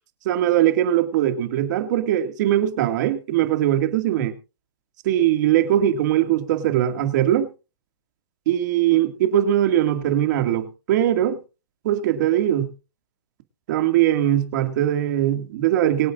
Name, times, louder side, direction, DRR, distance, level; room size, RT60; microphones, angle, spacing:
voice 1, 0.3-4.3 5.0-7.5 8.5-11.4 11.8-12.7 13.7-16.1, right 12 dB, 45° right, 2.0 m, -21 dB
24.0 x 8.3 x 2.5 m
hypercardioid pair, 150°, 13 cm